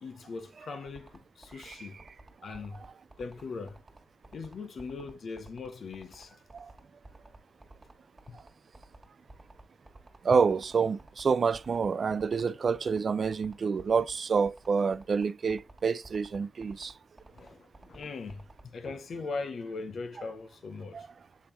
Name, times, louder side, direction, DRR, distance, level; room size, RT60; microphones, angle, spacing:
voice 1, 0.0-2.0 2.4-2.8 3.2-3.8 4.3-6.4 8.3-8.4 17.3-18.4 18.7-21.1, left 4 dB, 75° left, 0.7 m, -40 dB
sound 1, 0.9-18.6, right 2 dB, 25° right, 1.7 m, -52 dB
voice 2, 10.2-16.9 20.9-21.1, right 5 dB, 60° right, 0.4 m, -28 dB
7.4 x 3.5 x 4.2 m
cardioid pair, 80°, 0 cm